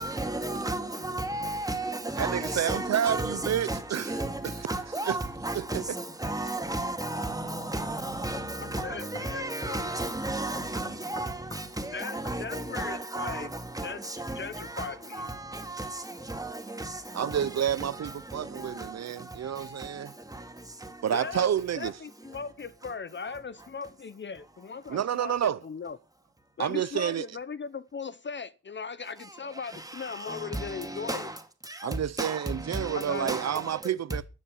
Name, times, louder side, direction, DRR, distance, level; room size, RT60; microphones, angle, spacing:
voice 1, 0.0-3.8 4.1-4.4 4.7-5.8 6.2-11.3 11.8-13.5 13.8-13.9 14.2-14.4 14.8-14.9 15.2-15.3 15.5-15.9 16.3-16.5 30.5-30.6 31.1-31.3 32.2-32.4 32.7-32.8 33.1-33.5, right 1 dB, 10° right, 2.4 m, -32 dB
voice 2, 2.2-4.2 4.4-4.5 5.1-5.2 5.5-5.6 17.1-20.1 21.0-21.9 24.9-25.6 26.6-27.2 31.8-34.2, right 9 dB, 65° right, 0.6 m, -29 dB
sound 1, 7.2-7.3 7.9-8.0 8.3-9.3 9.6-9.8 10.5-11.7 12.2-12.4, left 1 dB, 15° left, 2.8 m, -42 dB
voice 3, 8.6-9.9 11.9-13.5 13.8-14.0 14.3-15.3 21.1-21.5 21.8-26.0 26.6-31.3 32.9-33.3, left 5 dB, 40° left, 0.7 m, -38 dB
14.5 x 9.7 x 5.4 m
wide cardioid pair, 105°, 29 cm